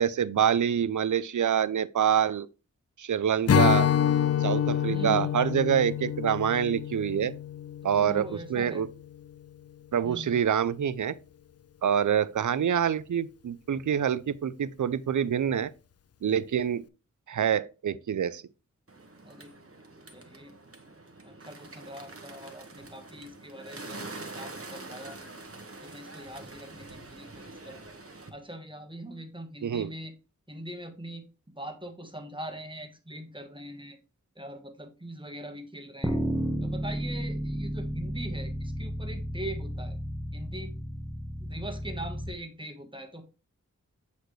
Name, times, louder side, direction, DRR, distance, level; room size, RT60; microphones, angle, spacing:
voice 1, 0.0-2.5 3.0-3.9 4.4-7.3 7.8-8.9 9.9-11.2 11.8-15.7 16.2-16.8 17.3-18.4 29.6-29.9, right 8 dB, 70° right, 0.5 m, -26 dB
Strum, 3.5-8.9, left 9 dB, 50° left, 0.4 m, -27 dB
voice 2, 4.9-5.4 7.8-8.9 10.0-10.4 19.2-19.5 20.1-20.6 21.2-25.2 25.8-27.9 28.3-30.1 30.5-31.2 31.5-34.0 34.3-36.2 36.6-40.0 40.3-40.7 41.4-43.2, right 1 dB, 15° right, 1.3 m, -42 dB
Bird, 18.9-28.3, right 2 dB, 45° right, 1.1 m, -45 dB
sound 1, 36.0-42.3, equal, 5° left, 1.2 m, -33 dB
8.0 x 4.1 x 3.2 m
wide cardioid pair, 50°, 31 cm